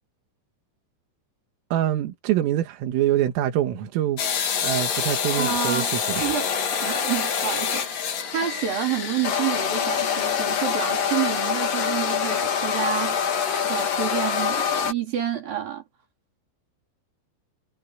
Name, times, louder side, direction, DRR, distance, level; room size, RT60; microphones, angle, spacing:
voice 1, 1.7-4.2 4.6-6.3, right 12 dB, 85° right, 4.5 m, -25 dB
sound 1, 4.2-14.9, left 7 dB, 50° left, 3.7 m, -25 dB
voice 2, 5.4-5.9 6.2-6.5 6.8-13.2 13.6-15.8, right 9 dB, 50° right, 5.0 m, -29 dB
omnidirectional pair, 5.7 m